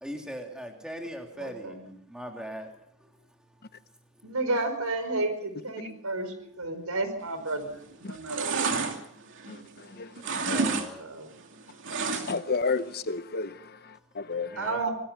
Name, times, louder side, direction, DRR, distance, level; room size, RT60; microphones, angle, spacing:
voice 1, 0.0-1.8 2.1-2.7 3.0-3.1 10.5-11.1 14.5-14.9, equal, 5° right, 3.2 m, -39 dB
voice 2, 1.4-2.0 4.2-8.7 11.0-11.3 14.6-14.9, right 2 dB, 85° right, 5.3 m, -32 dB
sound 1, 7.4-7.8 8.1-9.9 10.2-10.9 11.1-12.6 12.9-13.0, right 4 dB, 60° right, 2.6 m, -30 dB
voice 3, 9.5-10.1 10.5-10.6 12.1-14.6, left 4 dB, 45° left, 0.9 m, -32 dB
25.5 x 19.5 x 5.8 m
head